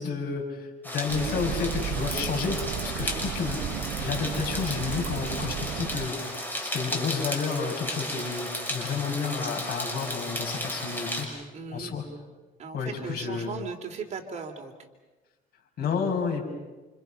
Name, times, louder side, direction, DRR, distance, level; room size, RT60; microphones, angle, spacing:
voice 1, 0.0-3.6 4.0-11.3 11.7-12.0 12.7-13.5 15.8-16.5, left 5 dB, 65° left, 1 dB, 6.0 m, -31 dB
sound 1, 0.8-11.2, left 1 dB, 10° left, 6.3 m, -34 dB
sound 2, 1.1-6.1, right 10 dB, 65° right, 0.9 m, -34 dB
voice 2, 3.0-3.3 11.5-12.0 12.6-14.7, right 5 dB, 40° right, 4 dB, 3.1 m, -37 dB
28.5 x 27.5 x 5.8 m, 1.2 s
cardioid pair, 110°, 17 cm